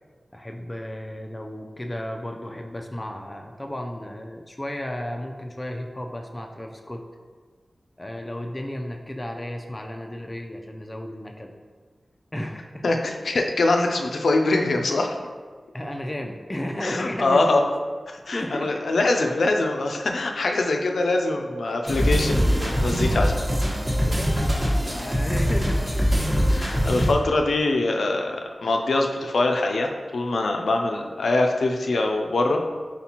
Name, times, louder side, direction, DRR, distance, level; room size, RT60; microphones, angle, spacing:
voice 1, 0.3-7.0 8.0-11.5 12.3-12.9 15.7-17.7 18.3-18.9 23.0-23.6 24.0-25.9 26.4-26.9, left 1 dB, 20° left, 2 dB, 0.4 m, -34 dB
voice 2, 12.8-15.2 16.8-17.6 18.3-23.4 26.5-32.6, left 2 dB, 90° left, 3 dB, 0.4 m, -23 dB
sound 1, 21.9-27.1, equal, 25° right, 1.1 m, -22 dB
4.4 x 4.1 x 2.9 m, 1.5 s
wide cardioid pair, 75°, 0 cm